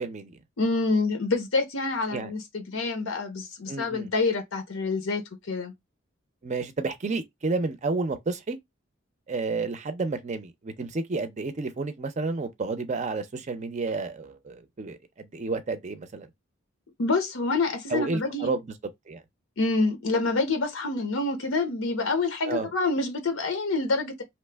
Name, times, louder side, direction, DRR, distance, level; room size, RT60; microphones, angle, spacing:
voice 1, 0.0-0.4 2.1-2.3 3.7-4.1 6.4-8.6 9.3-16.3 17.9-18.7 19.1-19.2 22.5-22.7, right 3 dB, 35° right, 0.5 m, -31 dB
voice 2, 0.6-5.7 17.0-18.5 19.6-24.2, left 3 dB, 85° left, 0.7 m, -27 dB
2.9 x 2.1 x 3.3 m
head